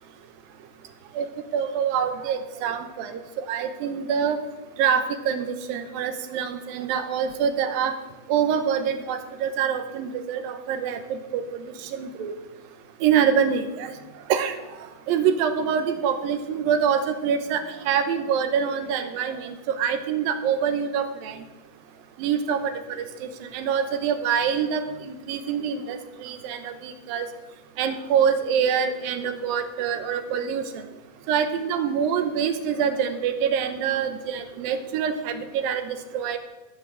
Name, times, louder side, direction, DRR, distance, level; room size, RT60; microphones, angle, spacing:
voice 1, 1.5-3.2 3.5-4.4 4.8-7.9 8.3-11.4 11.9-12.3 13.0-13.9 14.3-14.5 15.1-21.4 22.2-22.7 23.0-27.3 27.8-30.8 31.3-36.4, right 7 dB, 75° right, 8 dB, 2.6 m, -25 dB
13.5 x 5.8 x 7.3 m, 1.1 s
omnidirectional pair, 4.3 m